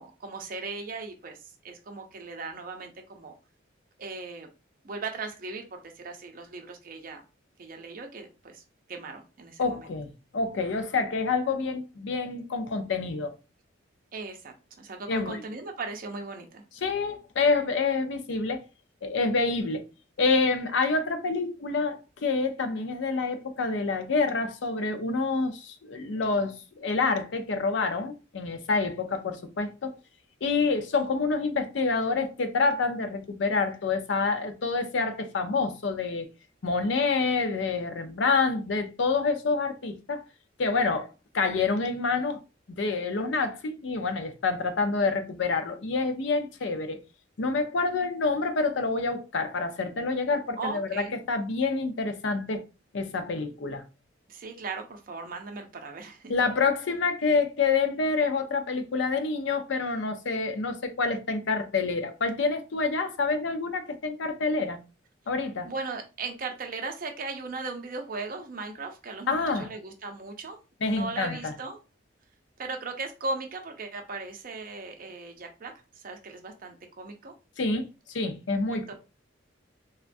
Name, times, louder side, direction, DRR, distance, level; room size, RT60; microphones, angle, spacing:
voice 1, 0.0-1.4 1.6-3.3 4.0-4.5 4.8-7.2 7.6-8.6 8.9-9.9 14.1-16.6 50.6-51.2 54.3-56.3 65.7-70.6 70.8-71.8 72.6-77.3 78.7-78.9, right 3 dB, 50° right, 0.6 m, -38 dB
voice 2, 9.6-13.3 15.1-15.4 16.8-18.7 19.0-19.9 20.2-29.9 30.4-36.3 36.6-40.2 40.6-41.1 41.3-42.4 42.8-47.0 47.4-52.6 52.9-53.8 56.3-64.8 65.3-65.7 69.3-69.7 70.8-71.5 77.6-78.9, left 4 dB, 70° left, 0.5 m, -27 dB
3.4 x 2.2 x 2.5 m
head